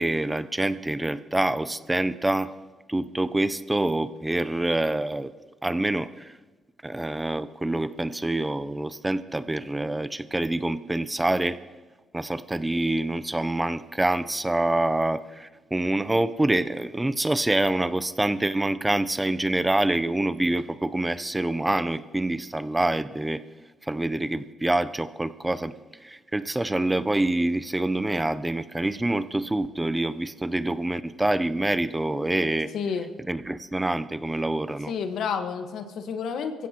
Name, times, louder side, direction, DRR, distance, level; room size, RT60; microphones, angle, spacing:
voice 1, 0.0-2.5 2.9-5.3 5.6-6.3 6.8-11.6 12.1-23.4 23.9-25.7 26.0-32.7 33.3-34.9, right 1 dB, 10° right, 14 dB, 0.5 m, -26 dB
voice 2, 32.7-33.1 34.9-36.7, left 6 dB, 75° left, 7 dB, 1.3 m, -30 dB
22.0 x 15.5 x 2.9 m, 1.3 s
cardioid pair, 90°, 0 cm